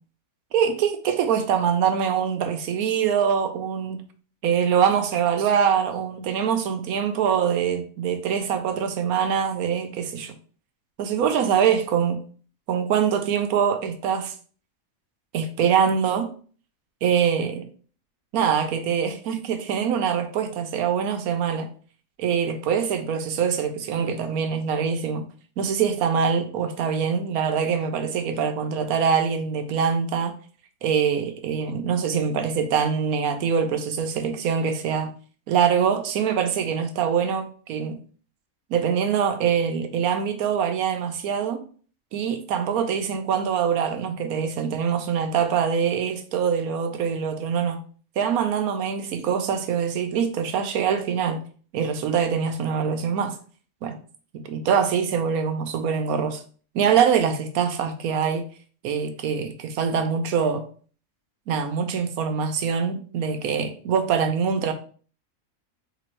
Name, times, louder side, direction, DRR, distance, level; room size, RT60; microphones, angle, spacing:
voice 1, 0.5-4.0 4.4-10.3 11.0-12.2 12.7-14.3 15.3-16.3 17.0-17.7 18.3-21.7 22.2-25.2 25.6-30.3 30.8-35.1 35.5-38.0 38.7-41.6 42.1-47.8 48.2-51.4 51.7-53.4 53.8-54.0 54.3-56.4 56.7-58.4 58.8-60.6 61.5-64.7, right 7 dB, 90° right, 1.1 m, -24 dB
3.4 x 3.0 x 4.4 m
omnidirectional pair, 1.5 m